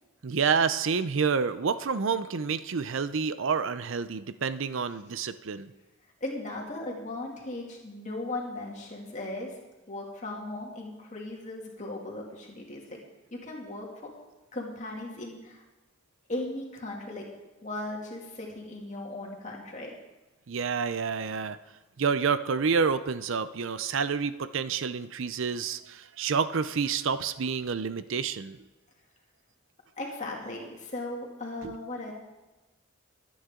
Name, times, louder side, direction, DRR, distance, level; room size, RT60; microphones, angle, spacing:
voice 1, 0.2-5.7 20.5-21.6 22.0-28.6 31.6-31.7, right 5 dB, 65° right, 13 dB, 0.5 m, -28 dB
voice 2, 6.2-9.5 9.9-13.0 13.3-13.9 14.5-15.6 16.3-17.2 17.6-19.9 30.0-32.1, left 2 dB, 35° left, -1 dB, 2.5 m, -37 dB
22.5 x 9.4 x 3.8 m, 1.1 s
head